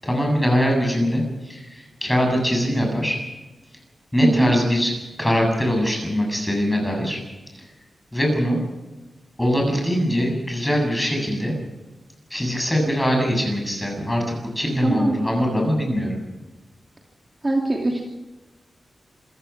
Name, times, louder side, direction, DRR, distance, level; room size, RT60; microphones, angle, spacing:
voice 1, 0.0-3.2 4.1-4.9 5.2-7.2 8.1-8.6 9.4-11.5 12.3-16.2, equal, 10° left, 1 dB, 7.6 m, -22 dB
voice 2, 4.2-4.5 14.8-15.2 17.4-18.0, right 2 dB, 20° right, -1 dB, 2.6 m, -21 dB
27.5 x 16.0 x 5.9 m, 1.1 s
wide cardioid pair, 135°, 0 cm